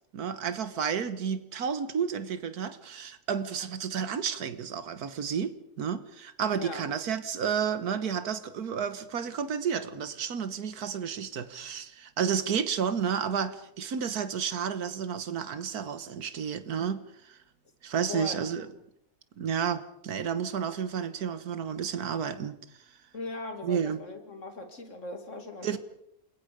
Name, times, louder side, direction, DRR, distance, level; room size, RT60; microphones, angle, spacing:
voice 1, 0.1-17.4 17.8-18.7 19.4-22.6 23.6-24.0 25.6-25.8, right 7 dB, 85° right, 1.8 m, -31 dB
voice 2, 6.6-6.9 18.1-18.7 23.1-25.8, left 3 dB, 55° left, 2.8 m, -39 dB
29.0 x 21.0 x 5.1 m
omnidirectional pair, 1.6 m